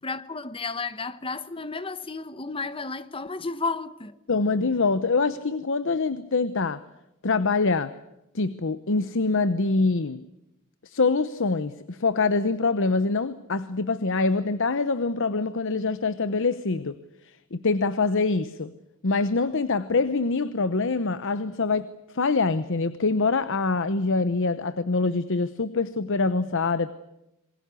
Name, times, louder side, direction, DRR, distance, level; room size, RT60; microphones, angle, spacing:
voice 1, 0.0-4.2, left 3 dB, 25° left, 1.0 m, -32 dB
voice 2, 4.3-6.8 7.2-7.9 8.3-10.2 10.8-17.0 17.2-18.7 19.0-26.9, left 3 dB, 60° left, 0.9 m, -25 dB
27.0 x 20.5 x 8.3 m
head